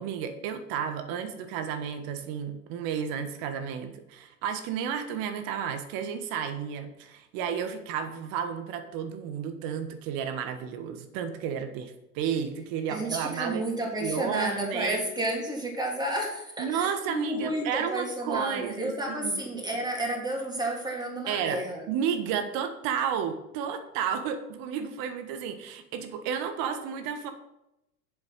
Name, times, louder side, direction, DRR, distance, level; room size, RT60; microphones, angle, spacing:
voice 1, 0.0-13.7 14.0-15.1 16.6-19.4 21.3-21.6 21.9-27.3, right 8 dB, 50° right, 8 dB, 1.5 m, -32 dB
voice 2, 12.9-21.8, right 1 dB, 10° right, -1 dB, 3.0 m, -31 dB
7.7 x 7.6 x 5.7 m, 0.88 s
hypercardioid pair, 90°, 46 cm